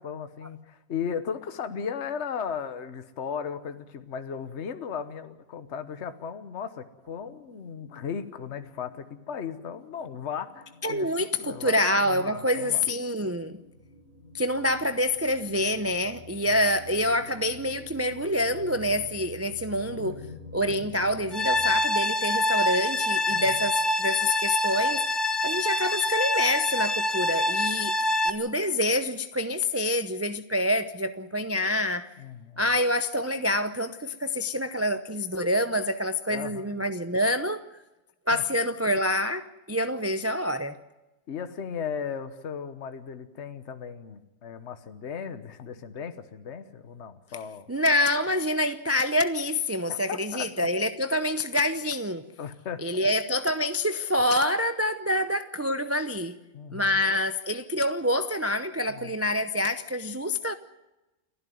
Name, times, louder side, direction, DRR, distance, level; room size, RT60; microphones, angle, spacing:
voice 1, 0.0-11.1 11.4-12.8 16.4-16.6 20.0-20.5 23.3-23.7 32.2-32.6 36.3-36.7 38.3-38.4 41.3-47.7 49.9-50.7 52.4-53.1 56.5-57.0 58.9-59.2, left 7 dB, 55° left, 1.4 m, -36 dB
sound 1, 7.0-21.7, left 2 dB, 70° right, 4.5 m, -49 dB
voice 2, 10.8-13.6 14.3-20.2 20.5-25.0 25.4-27.9 28.2-32.1 32.6-37.6 38.3-40.8 47.7-52.3 52.8-56.4 56.7-60.5, left 1 dB, 15° right, 0.6 m, -26 dB
sound 2, 21.3-28.3, left 1 dB, 20° left, 0.9 m, -26 dB
29.5 x 11.5 x 9.4 m
omnidirectional pair, 1.4 m